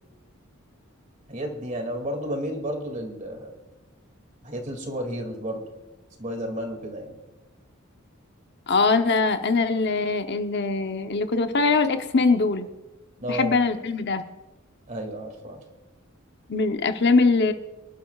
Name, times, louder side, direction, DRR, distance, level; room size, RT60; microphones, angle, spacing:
voice 1, 1.3-3.5 4.4-5.6 6.2-7.2 13.2-13.6 14.9-15.6, right 1 dB, 40° right, 4 dB, 2.4 m, -32 dB
voice 2, 8.7-12.7 13.3-14.2 16.5-17.5, left 3 dB, 55° left, 7 dB, 0.8 m, -22 dB
25.0 x 11.5 x 2.4 m, 1.1 s
head